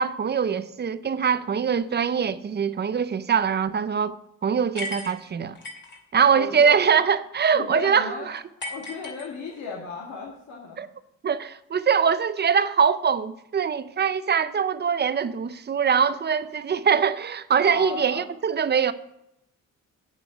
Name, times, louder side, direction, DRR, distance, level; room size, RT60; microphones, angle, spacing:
voice 1, 0.0-4.1 4.4-5.5 6.1-8.4 10.8-10.9 11.2-18.9, right 7 dB, 35° right, 0.6 m, -23 dB
sound 1, 4.8-6.0 8.6-9.8, left 2 dB, 40° left, 2.4 m, -36 dB
voice 2, 6.3-7.1 7.5-10.8 17.7-18.2, left 4 dB, 70° left, 2.0 m, -36 dB
8.4 x 8.3 x 5.2 m
cardioid pair, 90°, 30 cm